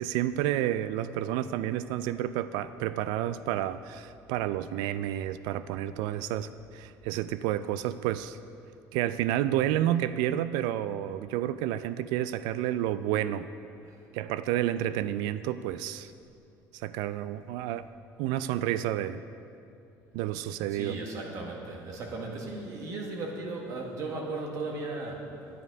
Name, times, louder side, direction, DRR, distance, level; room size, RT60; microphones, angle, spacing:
voice 1, 0.0-8.4 8.9-13.5 14.1-16.1 16.7-17.9 18.2-19.2 20.1-21.0, right 12 dB, 90° right, 14 dB, 0.3 m, -30 dB
voice 2, 20.7-25.3, right 3 dB, 50° right, 0 dB, 1.7 m, -36 dB
9.7 x 9.4 x 5.3 m, 2.6 s
cardioid pair, 150°, 7 cm